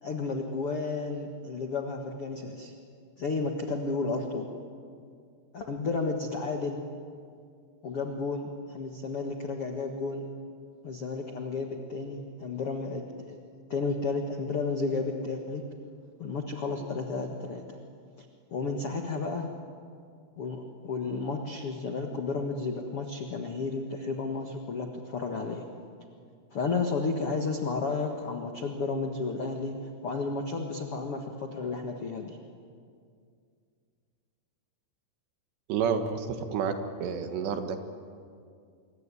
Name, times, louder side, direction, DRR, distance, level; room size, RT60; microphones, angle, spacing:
voice 1, 0.0-2.7 3.2-4.5 5.5-6.8 7.8-10.3 10.8-13.4 13.7-15.6 16.2-17.8 18.5-19.5 20.4-25.6 26.5-29.7 30.0-32.4, left 4 dB, 75° left, 3 dB, 1.3 m, -32 dB
voice 2, 35.7-36.7 37.0-37.8, right 6 dB, 70° right, 7 dB, 3.6 m, -29 dB
26.5 x 23.0 x 9.9 m, 2.3 s
omnidirectional pair, 5.3 m